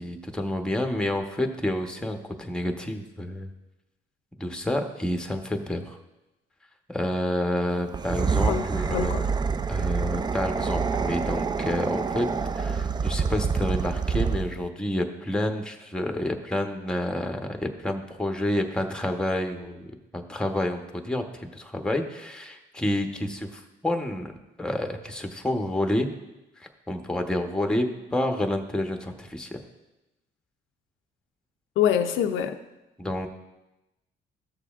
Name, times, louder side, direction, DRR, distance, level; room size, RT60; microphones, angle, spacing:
voice 1, 0.0-3.5 4.4-6.0 6.9-9.2 9.7-12.3 12.5-24.3 24.6-26.1 26.6-29.6 33.0-33.3, left 1 dB, 5° left, 4 dB, 0.9 m, -29 dB
sound 1, 7.9-14.6, right 5 dB, 20° right, 0.4 m, -27 dB
voice 2, 8.9-9.3 31.8-32.6, left 9 dB, 85° left, 7 dB, 0.5 m, -24 dB
14.0 x 6.6 x 2.4 m, 0.98 s
cardioid pair, 90°, 20 cm